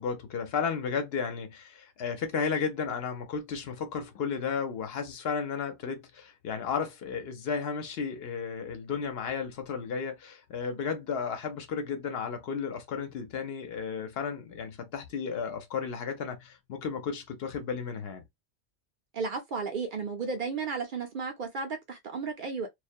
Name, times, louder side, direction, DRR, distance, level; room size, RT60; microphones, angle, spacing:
voice 1, 0.0-18.2, left 6 dB, 65° left, 0.8 m, -33 dB
voice 2, 19.1-22.7, right 5 dB, 60° right, 0.6 m, -33 dB
2.3 x 2.1 x 2.5 m
omnidirectional pair, 1.1 m